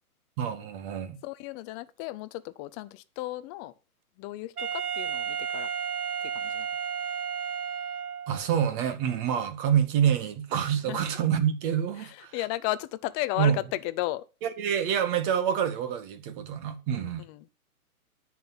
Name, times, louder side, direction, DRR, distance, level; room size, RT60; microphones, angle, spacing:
voice 1, 0.4-1.2 8.3-12.3 13.4-13.6 14.4-17.2, right 9 dB, 35° right, 2.0 m, -27 dB
voice 2, 1.2-3.7 4.2-5.7 6.2-6.7 10.9-11.0 12.0-14.3 16.9-17.5, left 17 dB, 20° left, 0.6 m, -34 dB
Wind instrument woodwind instrument, 4.6-8.5, right 7 dB, 85° right, 0.8 m, -32 dB
10.5 x 7.5 x 5.8 m
figure-of-eight pair, 125°, 44 cm